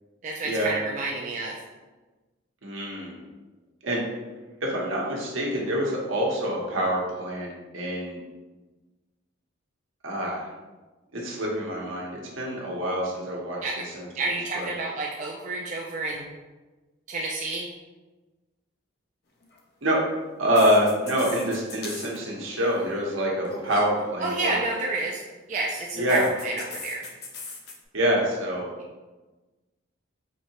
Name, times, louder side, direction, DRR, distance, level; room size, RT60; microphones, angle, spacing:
voice 1, 0.2-1.6 13.6-13.8 14.2-16.3 17.1-17.7 24.2-25.2 25.5-27.0, right 2 dB, 35° right, -3 dB, 0.3 m, -29 dB
voice 2, 2.6-3.2 3.8-4.0 4.6-8.2 10.0-10.5 11.1-14.1 14.6-14.7 19.8-20.0 20.4-24.7 25.9-26.3 27.9-28.7, equal, 70° right, -3 dB, 0.9 m, -26 dB
sound 1, 19.4-19.6 20.5-22.2 22.5-22.8 23.4-23.9 26.1-27.7, left 4 dB, 50° left, 0.5 m, -39 dB
4.4 x 2.7 x 2.8 m, 1.2 s
head